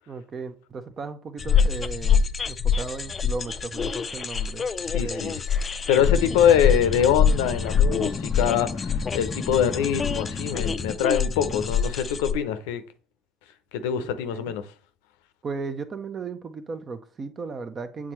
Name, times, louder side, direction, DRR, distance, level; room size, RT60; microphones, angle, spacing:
voice 1, 0.1-4.7 5.0-5.4 14.3-14.6 15.4-18.1, right 4 dB, 35° right, 0.8 m, -36 dB
sound 1, 1.4-12.3, left 6 dB, 30° left, 0.4 m, -25 dB
voice 2, 4.8-5.4 5.9-12.8 13.7-14.6, left 9 dB, 70° left, 0.6 m, -24 dB
8.5 x 3.7 x 3.1 m
hypercardioid pair, 60°, 0 cm